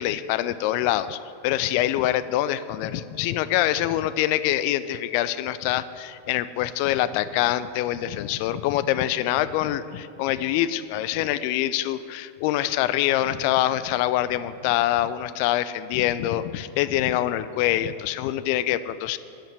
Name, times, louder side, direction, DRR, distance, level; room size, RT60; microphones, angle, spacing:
voice 1, 0.0-19.2, left 13 dB, 50° left, 15 dB, 0.4 m, -25 dB
12.5 x 5.6 x 8.9 m, 2.5 s
figure-of-eight pair, 90°, 0 cm